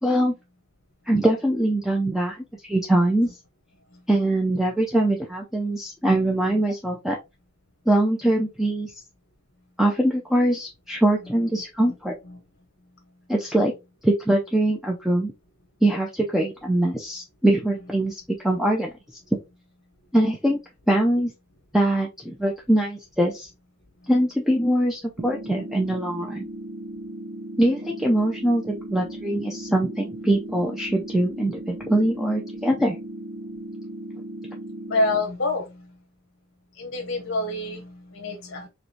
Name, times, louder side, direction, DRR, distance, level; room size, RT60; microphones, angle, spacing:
voice 1, 0.0-0.3 1.1-2.4 2.7-3.3 4.1-7.2 7.9-8.9 9.8-12.1 13.3-13.7 14.0-15.3 15.8-18.9 20.1-20.6 20.9-21.3 21.7-23.5 24.1-26.5 27.6-33.0, right 1 dB, ahead, 0.6 m, -22 dB
sound 1, 25.2-35.2, right 1 dB, 85° right, 0.7 m, -37 dB
voice 2, 34.9-36.0 36.7-38.7, left 2 dB, 55° left, 1.0 m, -27 dB
4.9 x 3.1 x 2.8 m
head